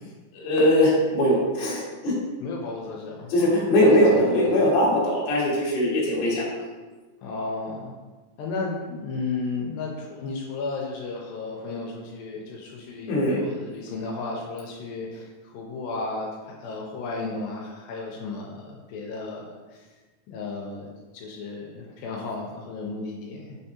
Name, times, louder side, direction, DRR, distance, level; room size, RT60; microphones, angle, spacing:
voice 1, 0.3-2.2 3.3-6.4 13.1-13.4, left 1 dB, 65° left, -4 dB, 2.1 m, -21 dB
voice 2, 2.4-3.5 3.8-4.5 7.2-7.9 8.4-19.9 20.3-23.6, left 3 dB, 85° left, -2 dB, 2.3 m, -34 dB
5.5 x 3.4 x 2.8 m, 1.3 s
omnidirectional pair, 4.0 m